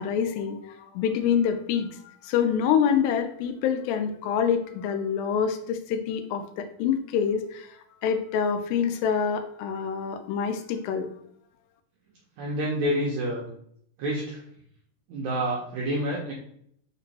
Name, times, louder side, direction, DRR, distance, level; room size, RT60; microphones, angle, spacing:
voice 1, 0.0-7.7 8.0-11.1, left 7 dB, 85° left, 7 dB, 2.3 m, -26 dB
voice 2, 12.4-13.4 14.0-14.4 15.1-16.3, equal, 80° right, -3 dB, 1.7 m, -28 dB
5.2 x 3.0 x 2.8 m, 0.66 s
omnidirectional pair, 4.0 m